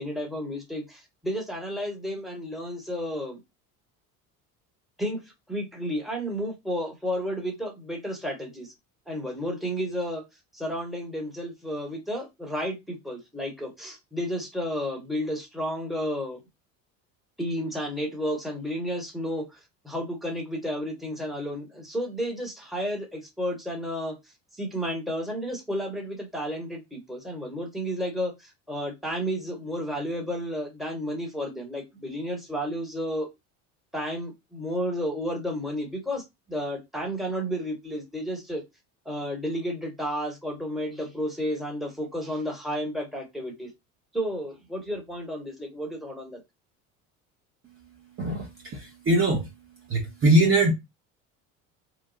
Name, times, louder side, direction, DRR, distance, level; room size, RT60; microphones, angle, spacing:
voice 1, 0.0-3.4 5.0-8.7 9.1-10.2 10.5-16.4 17.4-19.6 19.8-24.2 24.5-33.3 33.9-38.6 39.0-43.7 44.1-46.4, equal, ahead, 1.2 m, -32 dB
voice 2, 48.2-49.5 49.9-50.7, right 1 dB, 35° right, 0.9 m, -22 dB
2.9 x 2.2 x 2.7 m
hypercardioid pair, 80°, 39 cm